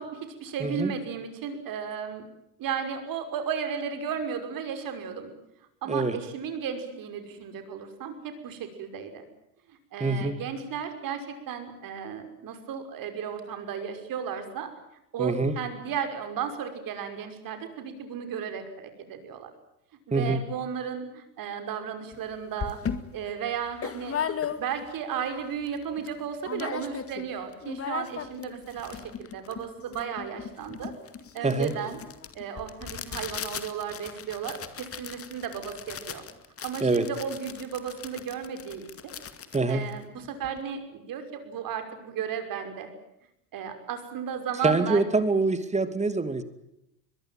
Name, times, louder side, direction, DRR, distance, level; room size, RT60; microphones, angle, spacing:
voice 1, 0.0-2.2 2.6-5.3 5.8-9.3 9.7-14.7 15.1-19.5 20.1-24.2 24.6-30.9 31.3-32.0 32.3-36.3 36.6-39.2 39.7-42.9 43.5-45.0, right 7 dB, 45° right, 7 dB, 5.9 m, -34 dB
voice 2, 0.6-0.9 5.9-6.2 10.0-10.4 15.2-15.5 20.1-20.4 31.4-31.7 36.8-37.1 39.5-39.8 44.6-46.4, right 3 dB, 15° right, 11 dB, 2.6 m, -25 dB
sound 1, 22.1-22.2 22.6-25.0 25.4-25.5 25.7-26.1 26.4-27.3 27.5-40.6, left 7 dB, 30° left, 2.3 m, -37 dB
23.0 x 22.0 x 9.1 m, 0.82 s
hypercardioid pair, 85°, 46 cm